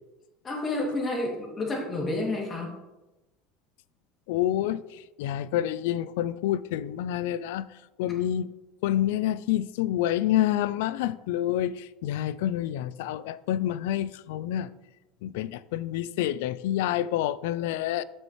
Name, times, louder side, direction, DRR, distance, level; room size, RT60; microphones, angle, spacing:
voice 1, 0.4-2.7, left 2 dB, 30° left, 2.4 m, -30 dB
voice 2, 4.3-7.6 8.0-8.5 8.8-14.7 15.2-18.0, left 12 dB, 80° left, 0.3 m, -28 dB
7.0 x 6.6 x 3.1 m
supercardioid pair, 110°, 0 cm